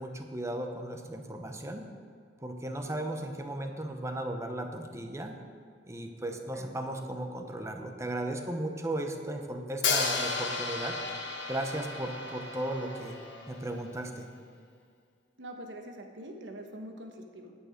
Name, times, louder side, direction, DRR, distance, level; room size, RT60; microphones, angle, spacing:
voice 1, 0.0-1.8 2.4-5.3 5.9-11.0 11.5-13.2 13.5-14.3, right 1 dB, 15° right, 5 dB, 0.8 m, -36 dB
voice 2, 6.3-6.8 15.4-17.5, right 1 dB, 75° right, 3 dB, 1.2 m, -44 dB
Hi-hat, 9.8-13.8, left 4 dB, 70° left, 1.3 m, -33 dB
9.8 x 8.9 x 5.1 m, 2.2 s
head